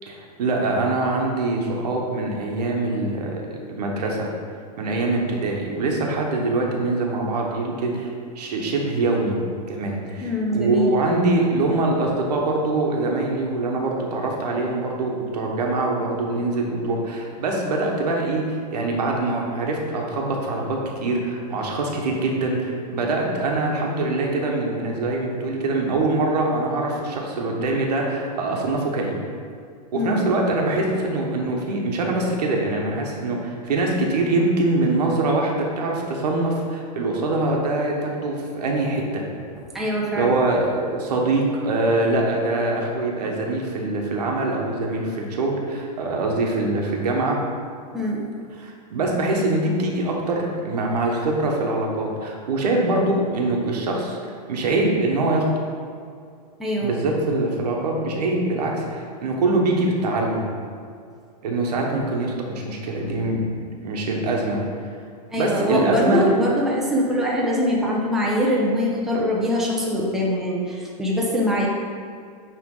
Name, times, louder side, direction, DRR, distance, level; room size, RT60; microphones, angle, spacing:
voice 1, 0.1-4.3 4.8-8.1 8.3-9.4 9.7-29.2 29.9-39.2 40.2-47.4 48.6-54.2 54.5-55.5 56.8-60.5 61.4-64.6 65.3-66.2, right 2 dB, 85° right, 0 dB, 1.3 m, -23 dB
voice 2, 10.2-10.9 29.9-30.3 39.6-40.6 47.9-48.2 56.6-57.0 62.9-63.2 65.3-71.7, equal, ahead, -5 dB, 0.7 m, -23 dB
9.1 x 3.4 x 3.9 m, 2.3 s
supercardioid pair, 150°, 20 cm